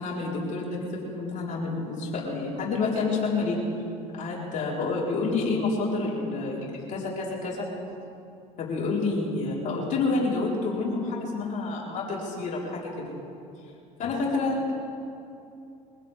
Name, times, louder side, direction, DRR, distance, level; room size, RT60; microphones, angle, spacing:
voice 1, 0.0-3.7 4.1-7.7 8.6-13.2 14.0-14.7, left 3 dB, 55° left, -5 dB, 4.6 m, -28 dB
24.0 x 16.0 x 3.7 m, 2.6 s
hypercardioid pair, 75°, 16 cm